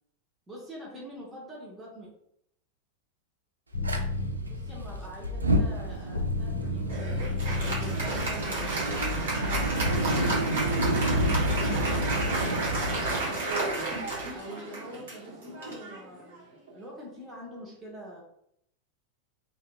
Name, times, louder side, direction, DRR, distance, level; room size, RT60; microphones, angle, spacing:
voice 1, 0.5-2.1 4.4-13.1 13.5-14.0 14.3-18.2, equal, 10° right, -4 dB, 0.7 m, -45 dB
sound 1, 3.7-10.0, left 2 dB, 70° left, 0.4 m, -33 dB
Fire, 3.8-4.0 5.3-14.3, right 1 dB, 75° right, 0.3 m, -29 dB
Applause, 6.9-16.7, right 2 dB, 60° right, 1.0 m, -32 dB
2.7 x 2.1 x 2.2 m, 0.72 s
figure-of-eight pair, 90°, 0 cm